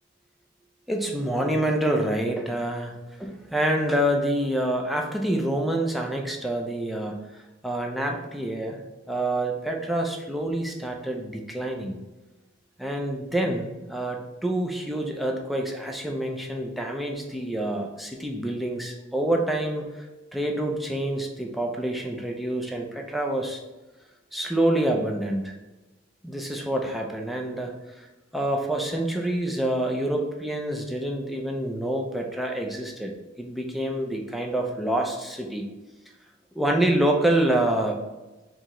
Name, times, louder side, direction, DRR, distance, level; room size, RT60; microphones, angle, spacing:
voice 1, 0.9-8.8 9.1-12.0 12.8-20.0 20.3-23.6 24.3-25.5 26.2-28.1 28.3-35.7 36.5-38.0, right 1 dB, ahead, 1 dB, 0.5 m, -27 dB
4.5 x 3.0 x 3.7 m, 1.1 s
head